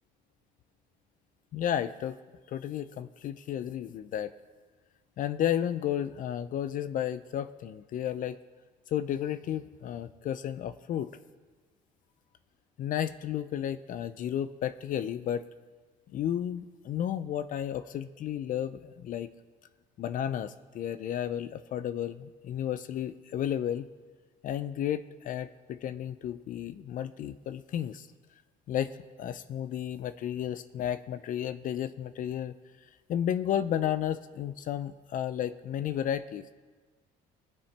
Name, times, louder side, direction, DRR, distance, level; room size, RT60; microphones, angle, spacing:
voice 1, 1.5-2.2 2.5-4.3 5.2-8.4 8.9-11.1 12.8-15.4 16.1-19.3 20.0-23.9 24.4-28.1 28.7-32.6 33.1-36.4, left 10 dB, 55° left, 13 dB, 0.4 m, -33 dB
17.5 x 8.5 x 3.3 m, 1.4 s
cardioid pair, 110°, 17 cm